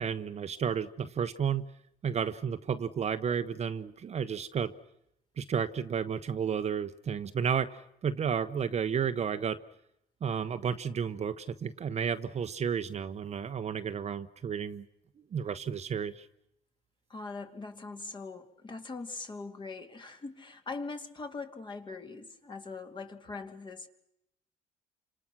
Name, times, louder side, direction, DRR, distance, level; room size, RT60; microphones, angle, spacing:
voice 1, 0.0-1.7 2.0-4.7 5.4-7.8 8.0-9.6 10.2-14.8 15.3-16.3, right 7 dB, 40° right, 10 dB, 1.1 m, -32 dB
voice 2, 17.1-23.9, left 3 dB, 30° left, 6 dB, 2.6 m, -41 dB
29.5 x 26.5 x 6.2 m, 0.80 s
cardioid pair, 110°, 17 cm